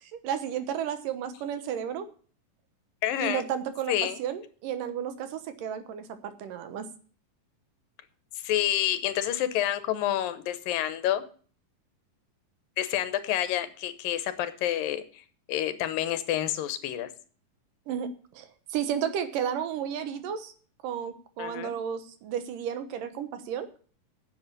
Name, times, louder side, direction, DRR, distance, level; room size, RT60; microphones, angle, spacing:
voice 1, 0.0-2.1 3.2-6.9 17.9-20.5 20.8-23.7, right 8 dB, 75° right, 10 dB, 2.8 m, -33 dB
voice 2, 3.0-3.4 3.9-4.2 8.4-11.2 12.8-15.2 15.5-17.1 21.4-21.7, left 12 dB, 90° left, 12 dB, 2.8 m, -28 dB
9.6 x 7.7 x 8.3 m, 0.42 s
omnidirectional pair, 3.9 m